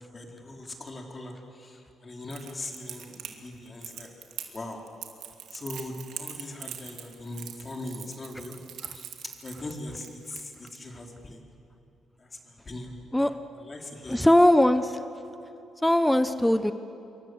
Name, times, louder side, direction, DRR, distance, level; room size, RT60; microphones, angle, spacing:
voice 1, 0.1-4.1 4.5-4.8 5.5-8.6 8.9-9.2 9.4-11.4 12.2-13.0 13.6-14.3, left 2 dB, 30° left, 1 dB, 4.4 m, -40 dB
Crackle, 2.3-10.8, right 10 dB, 80° right, 2.7 m, -42 dB
voice 2, 14.1-15.0 15.8-16.7, left 1 dB, 5° left, 10 dB, 0.9 m, -20 dB
28.0 x 23.5 x 8.1 m, 2.7 s
cardioid pair, 90°, 0 cm